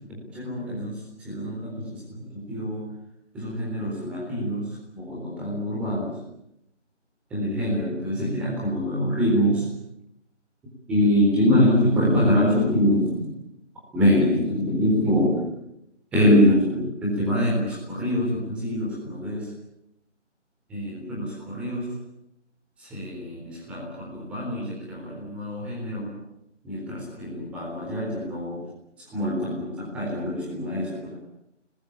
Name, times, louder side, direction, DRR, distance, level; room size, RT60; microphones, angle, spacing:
voice 1, 0.1-1.0 1.2-2.8 3.3-6.1 7.3-9.7 10.9-13.3 13.9-15.5 16.1-19.5 20.7-21.9 22.8-26.1 26.6-28.6 29.1-31.2, equal, 5° right, -4 dB, 3.9 m, -24 dB
26.5 x 20.5 x 8.8 m, 0.81 s
figure-of-eight pair, 165°, 36 cm